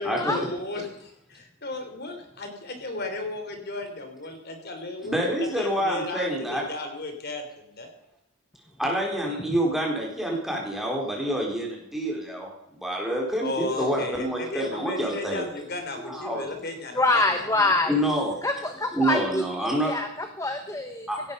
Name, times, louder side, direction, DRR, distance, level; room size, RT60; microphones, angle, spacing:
voice 1, 0.0-7.9 13.1-17.5, left 2 dB, 45° left, 5 dB, 3.3 m, -35 dB
voice 2, 5.0-6.6 8.8-12.5 12.8-15.4 16.1-16.4 17.9-18.3 18.9-19.9 21.1-21.2, right 1 dB, ahead, -2 dB, 4.1 m, -27 dB
voice 3, 16.9-18.0 18.4-21.1, left 2 dB, 15° left, 7 dB, 1.0 m, -25 dB
17.0 x 12.5 x 5.4 m, 0.82 s
head